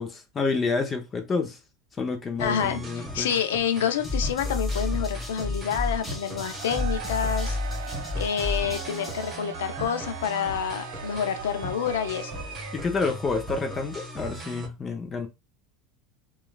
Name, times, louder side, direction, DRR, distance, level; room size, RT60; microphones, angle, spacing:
voice 1, 0.0-1.6 2.0-3.3 12.7-15.3, left 4 dB, 30° left, 0.6 m, -29 dB
voice 2, 2.4-7.6 8.1-12.3, left 8 dB, 80° left, 0.4 m, -28 dB
sound 1, 2.4-14.7, right 1 dB, 20° right, 1.1 m, -39 dB
sound 2, 4.0-9.4, left 2 dB, 15° left, 1.2 m, -31 dB
Cheering / Crowd, 6.3-13.1, right 9 dB, 80° right, 0.4 m, -40 dB
3.0 x 2.3 x 2.3 m
hypercardioid pair, 90°, 0 cm